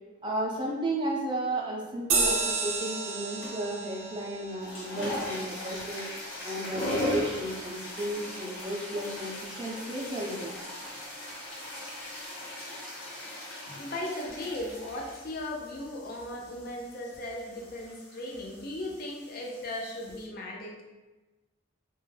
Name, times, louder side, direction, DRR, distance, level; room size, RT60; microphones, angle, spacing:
voice 1, 0.2-6.1 6.4-10.5, right 1 dB, 20° right, -2 dB, 0.4 m, -33 dB
sound 1, 2.1-7.0, right 4 dB, 90° right, 0.5 m, -33 dB
sound 2, 3.4-3.8 4.4-20.2, left 1 dB, 90° left, 0.7 m, -39 dB
voice 2, 13.7-20.8, left 1 dB, 45° left, -1 dB, 0.4 m, -37 dB
2.2 x 2.1 x 3.1 m, 1.1 s
head